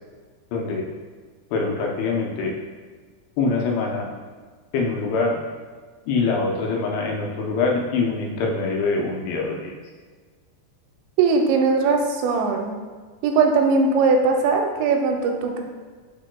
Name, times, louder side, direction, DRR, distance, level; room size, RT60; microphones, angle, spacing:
voice 1, 0.5-0.8 1.5-2.5 3.4-4.1 4.7-5.4 6.1-9.8, left 4 dB, 75° left, -1 dB, 2.7 m, -24 dB
voice 2, 11.2-12.7 13.2-15.6, right 4 dB, 90° right, 3 dB, 2.9 m, -20 dB
10.0 x 4.1 x 2.2 m, 1.5 s
omnidirectional pair, 5.0 m